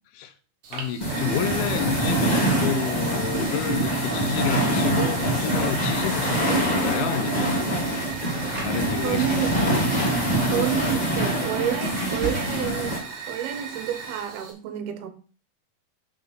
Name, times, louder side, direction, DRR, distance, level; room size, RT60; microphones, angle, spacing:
Fire, 0.6-14.5, right 5 dB, 60° right, 2.8 m, -38 dB
voice 1, 0.7-7.7 8.6-9.3 10.0-10.1, left 9 dB, 80° left, 2.5 m, -30 dB
sound 1, 1.0-13.0, right 1 dB, 35° left, 0.6 m, -24 dB
Drawer open or close, 5.8-6.8 7.9-9.0 9.8-12.5, right 2 dB, 25° right, 2.3 m, -37 dB
voice 2, 9.0-9.6 10.5-13.0 13.3-15.1, right 10 dB, 80° right, 2.8 m, -29 dB
6.7 x 5.6 x 5.2 m
omnidirectional pair, 4.5 m